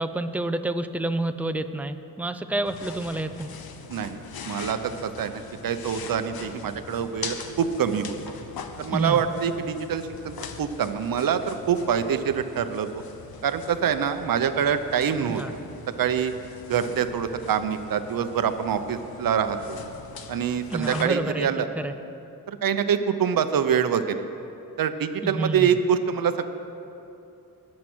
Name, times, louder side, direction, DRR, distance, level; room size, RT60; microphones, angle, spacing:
voice 1, 0.0-3.5 8.9-9.2 15.3-15.5 20.7-21.9 25.2-25.8, right 2 dB, 5° right, 8 dB, 0.5 m, -28 dB
sound 1, 2.6-21.0, left 6 dB, 90° left, 0.9 m, -42 dB
voice 2, 3.9-8.2 8.8-13.0 13.4-15.4 16.0-16.3 16.7-19.8 20.3-21.7 22.5-24.2 24.8-26.5, right 8 dB, 70° right, 9 dB, 0.8 m, -25 dB
21.0 x 7.6 x 6.2 m, 2.7 s
wide cardioid pair, 115°, 36 cm